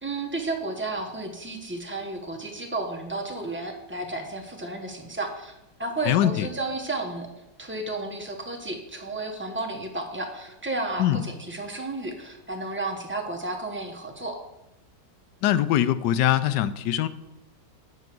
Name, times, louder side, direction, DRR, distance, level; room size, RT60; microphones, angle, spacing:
voice 1, 0.0-5.5 5.8-7.3 7.6-14.4, right 2 dB, 10° right, 1 dB, 1.0 m, -32 dB
voice 2, 6.1-6.5 11.0-11.2 15.4-17.1, left 12 dB, 80° left, 14 dB, 1.2 m, -22 dB
9.1 x 5.4 x 6.0 m, 0.93 s
omnidirectional pair, 1.9 m